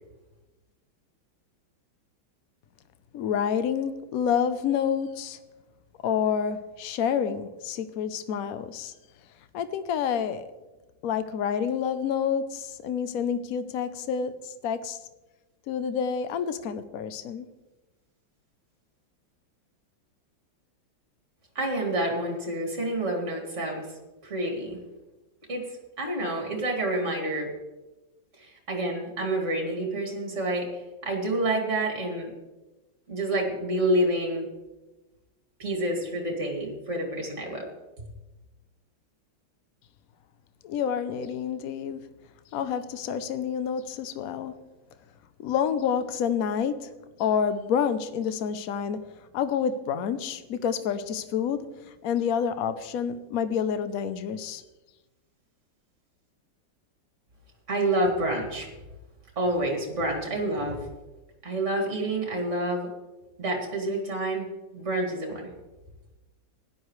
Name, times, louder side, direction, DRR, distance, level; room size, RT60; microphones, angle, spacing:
voice 1, 3.1-5.4 6.0-8.9 9.5-10.5 11.0-15.0 15.7-17.5 40.6-42.1 42.5-44.6 45.4-54.6, left 7 dB, 65° left, 0.9 m, -28 dB
voice 2, 21.5-23.9 24.2-24.8 25.5-25.6 26.0-27.5 28.4-32.3 33.1-34.5 35.6-37.7 57.7-58.7 59.4-60.9 61.4-62.9 63.4-64.5 64.7-65.5, right 1 dB, 35° right, 2.7 m, -28 dB
16.0 x 11.0 x 3.2 m
omnidirectional pair, 2.2 m